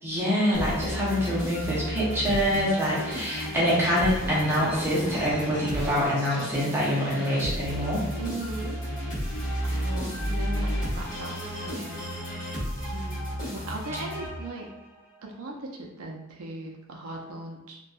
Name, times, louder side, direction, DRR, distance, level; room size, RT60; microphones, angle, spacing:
voice 1, 0.0-8.0 9.6-10.1, equal, 10° right, -8 dB, 0.6 m, -26 dB
sound 1, 0.5-14.8, equal, 40° left, 1.1 m, -33 dB
voice 2, 8.2-8.8 9.6-12.0 12.9-14.7 15.2-17.8, right 2 dB, 80° right, -1 dB, 0.5 m, -38 dB
2.6 x 2.2 x 2.3 m, 0.96 s
head